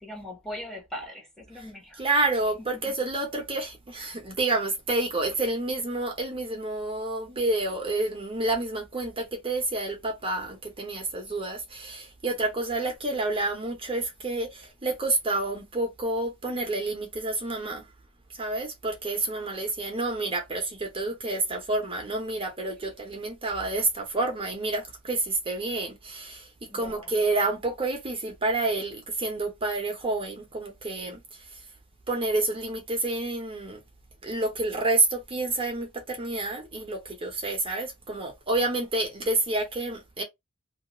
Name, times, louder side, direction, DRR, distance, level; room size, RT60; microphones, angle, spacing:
voice 1, 0.0-2.2 2.6-2.9 26.7-27.1, left 1 dB, ahead, 0.9 m, -41 dB
voice 2, 2.0-17.9 18.4-31.6 32.1-33.8 34.2-40.2, right 2 dB, 25° right, 0.8 m, -29 dB
2.9 x 2.4 x 2.8 m
head